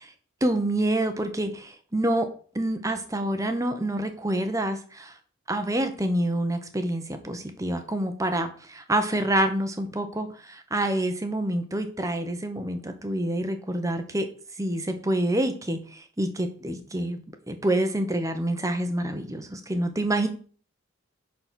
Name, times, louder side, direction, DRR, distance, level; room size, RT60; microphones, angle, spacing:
voice 1, 0.4-2.3 2.5-5.2 5.5-14.3 14.6-17.2 17.5-20.3, right 1 dB, 15° right, 7 dB, 1.1 m, -27 dB
10.0 x 4.4 x 6.3 m, 0.42 s
head